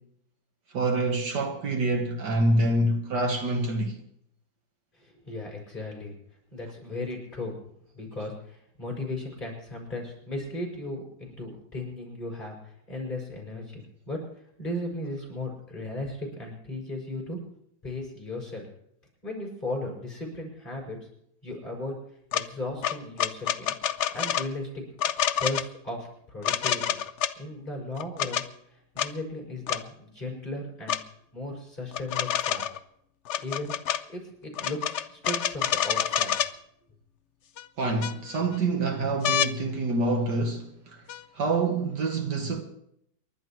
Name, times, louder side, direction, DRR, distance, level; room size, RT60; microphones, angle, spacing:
voice 1, 0.7-4.0 37.8-41.0 41.3-42.6, right 2 dB, 65° right, 1.9 m, -26 dB
voice 2, 5.0-6.1 6.5-7.6 7.9-14.2 14.6-17.4 17.8-18.7 19.2-21.0 21.4-21.9 22.3-23.7 24.1-24.8 25.4-26.9 27.4-31.0 31.3-32.6 33.4-36.4, left 2 dB, 25° left, 6.7 m, -36 dB
sound 1, 22.3-22.4 22.8-24.5 25.0-25.7 26.4-27.3 28.0-28.4 29.0-29.1 29.7-29.8 30.9-31.0 31.9-32.8 33.3-34.0 34.5-36.5 37.6-37.7 38.0-38.5 39.2-39.5 41.1-41.2, left 10 dB, 80° left, 0.6 m, -27 dB
29.0 x 12.0 x 3.1 m
omnidirectional pair, 2.0 m